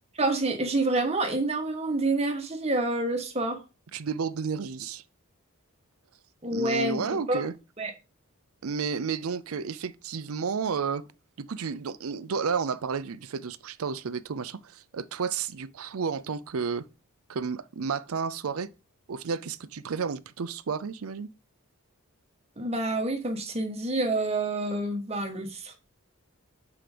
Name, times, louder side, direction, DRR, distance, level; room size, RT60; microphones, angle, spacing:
voice 1, 0.2-3.6 6.4-7.4 7.8-7.9 22.6-25.8, right 2 dB, 30° right, 1.3 m, -28 dB
voice 2, 3.9-5.0 6.5-7.5 8.6-11.1 11.4-16.8 17.3-18.7 19.1-21.3, right 5 dB, 85° right, 0.5 m, -31 dB
6.0 x 4.8 x 5.0 m
head